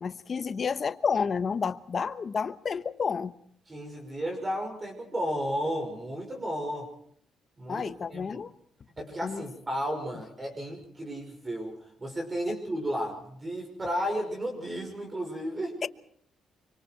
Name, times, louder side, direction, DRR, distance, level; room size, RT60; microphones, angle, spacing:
voice 1, 0.0-3.3 7.7-8.5 9.2-9.5 15.8-15.9, left 6 dB, 45° left, 1.0 m, -30 dB
voice 2, 3.7-6.9 7.6-8.3 9.0-15.8, equal, 25° right, 5.7 m, -33 dB
26.0 x 25.0 x 4.7 m
cardioid pair, 85°, 0 cm